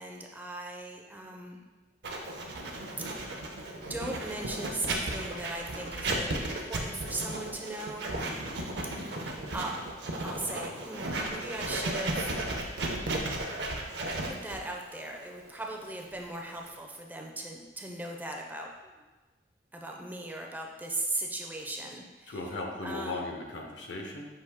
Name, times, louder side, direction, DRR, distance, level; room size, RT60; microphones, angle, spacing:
voice 1, 0.0-1.6 3.7-8.1 9.5-9.7 10.2-12.3 14.2-19.0 19.7-22.4 22.8-23.3, right 2 dB, 10° right, 1 dB, 0.4 m, -38 dB
Writing, 2.0-16.8, right 2 dB, 65° right, 0.6 m, -35 dB
voice 2, 8.5-8.8 22.3-24.3, left 2 dB, 80° left, 1 dB, 0.7 m, -37 dB
5.6 x 2.6 x 3.5 m, 1.2 s
head